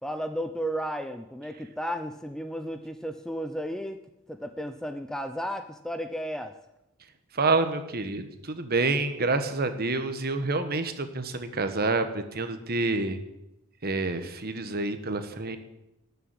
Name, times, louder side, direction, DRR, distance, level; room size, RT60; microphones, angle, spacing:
voice 1, 0.0-4.0 4.3-6.5, equal, 5° left, 8 dB, 0.6 m, -33 dB
voice 2, 7.3-13.2 13.8-15.6, right 3 dB, 45° right, 9 dB, 1.3 m, -28 dB
13.0 x 7.0 x 9.6 m, 0.89 s
head